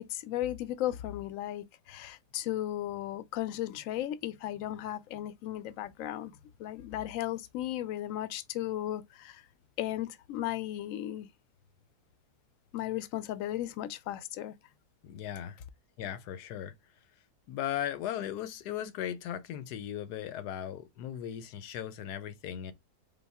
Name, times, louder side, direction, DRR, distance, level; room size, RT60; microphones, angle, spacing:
voice 1, 0.0-6.3 6.6-9.4 9.8-11.3 12.7-14.5, left 13 dB, 70° left, 0.8 m, -35 dB
voice 2, 15.0-15.6 16.0-16.7 17.5-22.7, left 10 dB, 90° left, 1.2 m, -37 dB
4.1 x 3.7 x 3.4 m
omnidirectional pair, 1.7 m